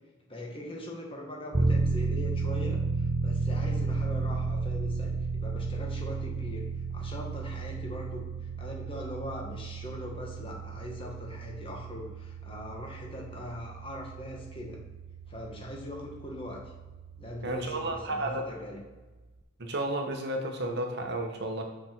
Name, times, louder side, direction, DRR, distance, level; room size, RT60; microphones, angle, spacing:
voice 1, 0.3-6.6 6.9-14.8 15.3-16.6 17.1-18.8, left 1 dB, 25° left, -1 dB, 1.5 m, -41 dB
sound 1, 1.5-17.9, right 4 dB, 30° right, 0.5 m, -33 dB
voice 2, 17.4-18.4 19.6-21.6, right 1 dB, 55° right, 3 dB, 1.0 m, -32 dB
6.9 x 5.1 x 4.4 m, 1.2 s
head